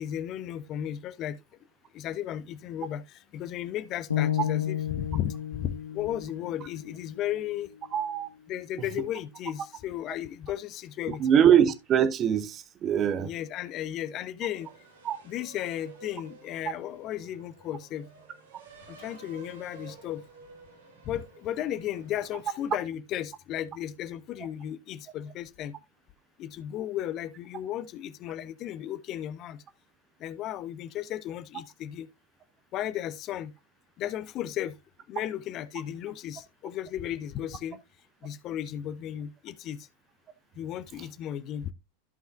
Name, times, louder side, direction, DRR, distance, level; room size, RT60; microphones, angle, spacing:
voice 1, 0.0-1.4 1.9-7.7 8.5-11.5 13.2-14.7 15.2-18.1 19.0-20.2 21.1-25.8 26.4-29.6 30.2-32.1 32.7-33.5 34.0-34.7 35.1-37.8 38.2-39.9 40.6-41.7, left 11 dB, 35° left, 0.6 m, -35 dB
sound 1, 4.1-8.2, left 10 dB, 70° left, 1.2 m, -33 dB
voice 2, 7.9-8.3 11.1-13.3 15.0-15.2, right 9 dB, 30° right, 0.8 m, -23 dB
sound 2, 14.5-22.7, right 4 dB, 65° right, 2.3 m, -52 dB
14.5 x 5.5 x 2.4 m
figure-of-eight pair, 90°, 0 cm